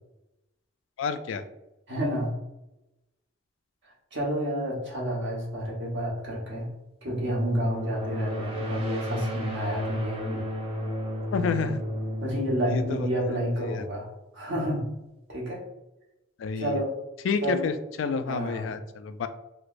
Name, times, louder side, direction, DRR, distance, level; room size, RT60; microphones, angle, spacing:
voice 1, 1.0-1.4 11.3-11.8 12.7-13.0 13.6-13.8 16.4-16.8 17.2-19.3, left 5 dB, 75° left, 10 dB, 0.3 m, -29 dB
voice 2, 1.9-2.3 4.1-6.7 7.0-10.4 12.2-14.1 14.3-14.8 15.3-15.6 16.6-16.9 17.4-17.7 18.2-18.7, equal, 65° right, -3 dB, 1.1 m, -29 dB
sound 1, 7.1-13.7, equal, 30° right, 0.6 m, -33 dB
3.2 x 2.9 x 2.5 m, 0.94 s
head